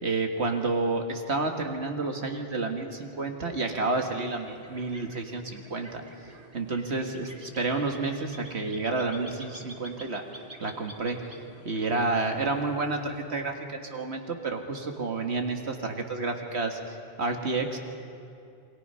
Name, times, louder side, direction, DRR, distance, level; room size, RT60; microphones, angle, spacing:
voice 1, 0.0-10.3 10.6-11.3 11.6-17.8, right 3 dB, 75° right, 3 dB, 2.0 m, -30 dB
sound 1, 3.3-13.7, right 1 dB, 35° right, 2.1 m, -49 dB
28.0 x 24.5 x 5.6 m, 2.5 s
omnidirectional pair, 1.1 m